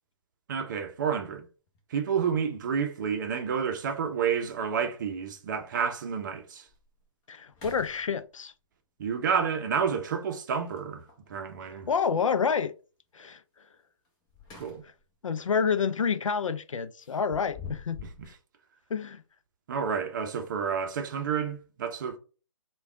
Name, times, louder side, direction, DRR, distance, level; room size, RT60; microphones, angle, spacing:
voice 1, 0.5-1.4 1.9-6.6 9.0-11.0 11.3-11.9 14.5-14.8 19.7-22.2, right 7 dB, 35° right, 0.6 m, -30 dB
sound 1, 1.7-1.8 3.5-3.6 4.0-4.1 4.4-5.0 5.5-5.6 6.2-6.3 6.7-7.0 7.4-8.5 10.6-11.3 14.0-15.1 15.5-15.7 17.0-18.3, left 6 dB, 20° left, 0.8 m, -47 dB
voice 2, 7.3-8.5 11.9-12.7 13.1-13.4 15.2-18.0 18.9-19.2, left 6 dB, 75° left, 0.5 m, -28 dB
3.3 x 2.3 x 3.5 m
figure-of-eight pair, 145°, 17 cm